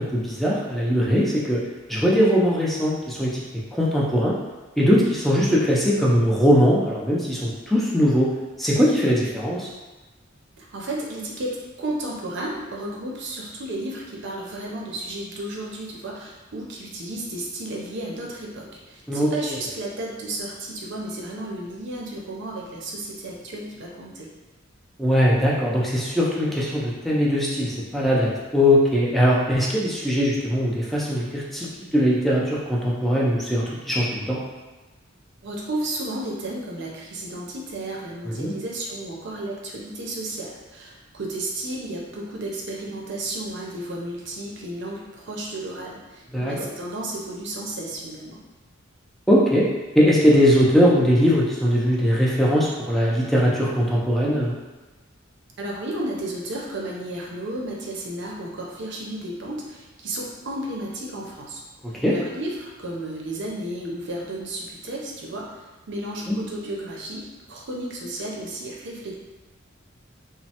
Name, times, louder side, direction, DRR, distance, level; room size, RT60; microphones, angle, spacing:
voice 1, 0.0-1.6 1.9-3.4 3.7-4.3 4.8-8.3 8.6-9.7 19.1-19.3 25.0-34.4 38.4-38.5 46.3-46.5 49.3-49.7 49.9-54.5 62.0-62.1 66.3-66.4, equal, ahead, -6 dB, 0.4 m, -20 dB
voice 2, 10.6-24.3 35.4-48.4 55.6-61.6 61.9-65.5 65.9-69.1, right 1 dB, 60° right, -2 dB, 0.6 m, -33 dB
3.0 x 2.0 x 2.8 m, 1.2 s
head